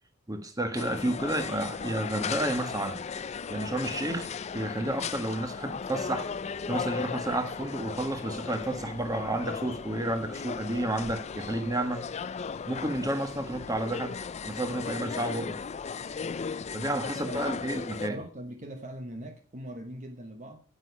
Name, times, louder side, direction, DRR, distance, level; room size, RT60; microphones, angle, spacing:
voice 1, 0.3-3.0 3.5-6.3 6.7-12.0 12.7-14.2 14.4-15.6 16.7-18.2, right 1 dB, 20° right, 1.5 m, -31 dB
sound 1, 0.7-18.1, left 6 dB, 35° left, 0.4 m, -36 dB
voice 2, 16.8-17.8 18.1-20.6, right 1 dB, 40° right, 1.0 m, -42 dB
8.9 x 8.8 x 5.4 m
head